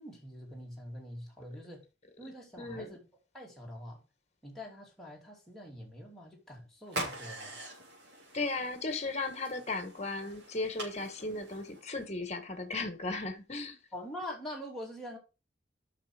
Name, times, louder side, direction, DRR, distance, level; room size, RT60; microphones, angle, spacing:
voice 1, 0.0-1.8 2.2-3.0 3.3-4.0 4.4-7.5 13.9-15.2, equal, ahead, 2.8 m, -44 dB
voice 2, 2.6-2.9 8.3-13.8, left 3 dB, 35° left, 1.4 m, -36 dB
sound 1, 6.9-12.1, right 1 dB, 65° right, 3.6 m, -44 dB
7.6 x 6.1 x 5.0 m
head